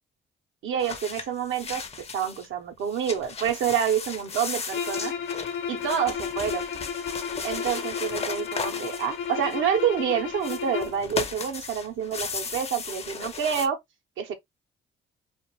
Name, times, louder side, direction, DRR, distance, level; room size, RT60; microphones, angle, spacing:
voice 1, 0.6-1.8 2.1-5.1 5.7-6.6 7.4-13.8 14.2-14.3, right 8 dB, 80° right, 0.8 m, -28 dB
sound 1, 0.8-2.5 2.8-9.8 10.4-13.7, left 5 dB, 30° left, 0.5 m, -36 dB
sound 2, 4.7-11.0, left 7 dB, 75° left, 0.9 m, -33 dB
2.4 x 2.3 x 2.8 m
cardioid pair, 90°, 20 cm